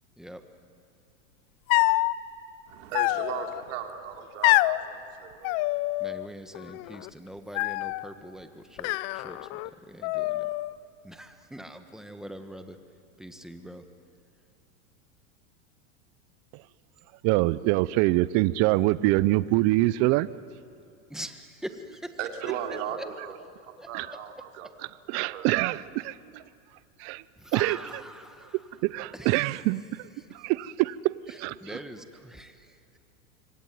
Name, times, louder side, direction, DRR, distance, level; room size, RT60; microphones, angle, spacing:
sound 1, 1.7-2.1 2.9-3.6 4.4-4.8 5.4-6.3 6.5-7.1 7.5-8.1 8.8-9.7 10.0-10.8, left 20 dB, 40° left, 0.6 m, -26 dB
voice 1, 2.7-5.5 22.2-23.4 23.9-24.7 25.1-25.5, right 9 dB, 70° right, 3 dB, 3.3 m, -37 dB
voice 2, 6.0-9.6 9.9-10.5 11.0-12.8 13.2-13.8 21.1-22.1 23.0-23.1 23.8-23.9 27.4-28.6 29.1-29.3 31.3-32.8, equal, ahead, 7 dB, 1.5 m, -43 dB
voice 3, 17.2-20.3 23.9-24.1 25.1-26.4 27.0-27.2 27.5-27.8 28.8-29.8 30.3-31.8, right 19 dB, 40° right, 18 dB, 0.6 m, -25 dB
26.0 x 23.5 x 9.4 m, 2.5 s
supercardioid pair, 130°, 39 cm